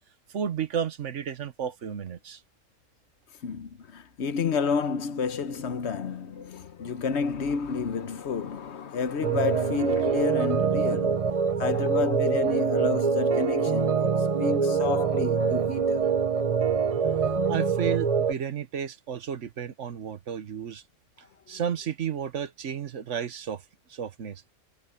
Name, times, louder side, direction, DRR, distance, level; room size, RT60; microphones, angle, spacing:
voice 1, 0.3-2.4 17.5-20.8 21.5-23.6 23.9-24.4, right 8 dB, 70° right, 1.3 m, -32 dB
voice 2, 3.4-11.2 11.6-16.0, left 5 dB, 60° left, 1.2 m, -30 dB
sound 1, 9.2-18.3, right 6 dB, 35° right, 0.7 m, -25 dB
omnidirectional pair, 1.3 m